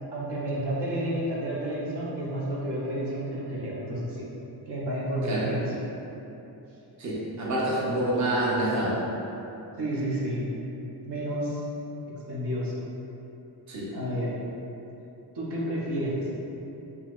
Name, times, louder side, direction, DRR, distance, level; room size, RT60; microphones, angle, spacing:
voice 1, 0.1-4.2 4.7-5.8 9.8-10.4 11.0-11.6 12.3-12.7 13.9-14.4 15.3-16.3, right 1 dB, 75° right, -6 dB, 0.9 m, -30 dB
voice 2, 7.0-8.9 13.7-13.9, right 1 dB, 45° right, -6 dB, 0.8 m, -27 dB
5.5 x 2.9 x 2.5 m, 3.0 s
wide cardioid pair, 145°, 41 cm